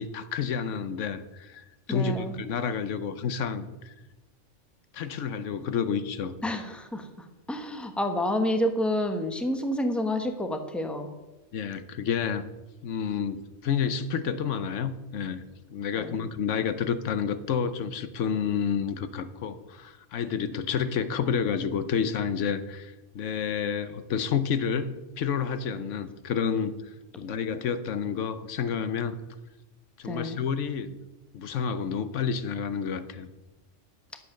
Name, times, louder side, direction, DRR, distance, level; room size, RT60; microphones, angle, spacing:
voice 1, 0.0-3.9 4.9-6.3 11.5-12.5 12.8-15.4 15.7-26.8 27.2-29.2 30.0-31.0 31.3-33.3, left 7 dB, 85° left, 12 dB, 1.1 m, -29 dB
voice 2, 1.9-2.4 6.4-7.1 7.5-11.1 15.9-16.3 30.0-30.4, left 1 dB, ahead, 6 dB, 1.1 m, -29 dB
11.0 x 8.2 x 6.5 m, 1.1 s
omnidirectional pair, 1.2 m